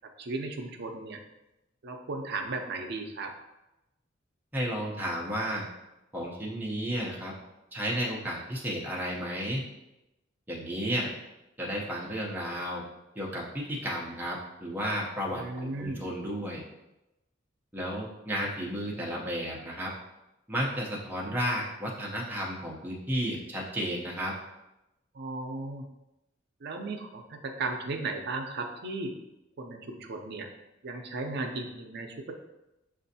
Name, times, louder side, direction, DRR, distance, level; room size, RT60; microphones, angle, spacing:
voice 1, 0.0-1.2 1.8-3.3 15.3-16.0 25.1-25.8 26.6-29.1 29.6-30.5 30.8-32.3, right 3 dB, 55° right, 4 dB, 0.5 m, -36 dB
voice 2, 4.5-5.7 6.1-7.3 7.7-9.6 10.5-11.1 11.6-12.8 13.2-16.6 17.7-19.9 20.5-24.3, equal, 10° right, -4 dB, 0.6 m, -33 dB
6.1 x 2.5 x 2.7 m, 0.94 s
head